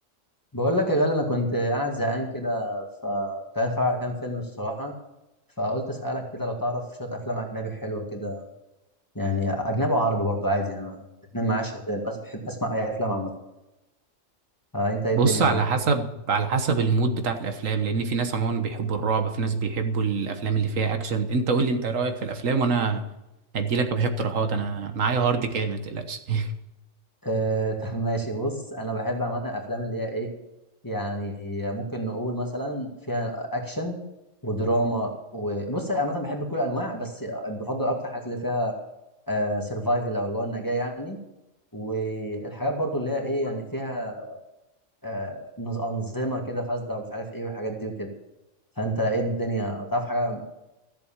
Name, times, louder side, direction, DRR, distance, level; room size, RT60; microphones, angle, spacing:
voice 1, 0.5-4.9 5.6-8.5 9.1-13.3 14.7-15.6 27.2-30.3 30.8-34.0 34.4-38.7 39.3-41.2 41.7-44.4 45.0-48.1 48.8-50.4, equal, 15° left, 1 dB, 2.0 m, -28 dB
voice 2, 15.2-23.0 23.5-26.5, right 4 dB, 90° right, 7 dB, 1.6 m, -25 dB
14.0 x 7.7 x 7.3 m, 0.96 s
omnidirectional pair, 1.3 m